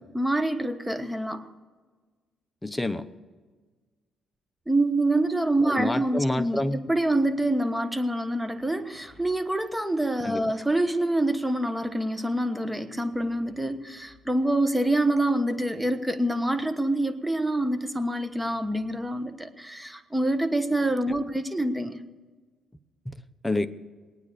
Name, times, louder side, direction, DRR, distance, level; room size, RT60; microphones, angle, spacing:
voice 1, 0.1-1.5 4.7-22.0, right 1 dB, 5° right, 9 dB, 1.2 m, -26 dB
voice 2, 2.6-3.0 5.6-6.9 10.2-10.4 23.1-23.2 23.4-23.7, left 1 dB, 10° left, 11 dB, 0.9 m, -27 dB
21.0 x 9.4 x 6.8 m, 1.4 s
cardioid pair, 90°, 0 cm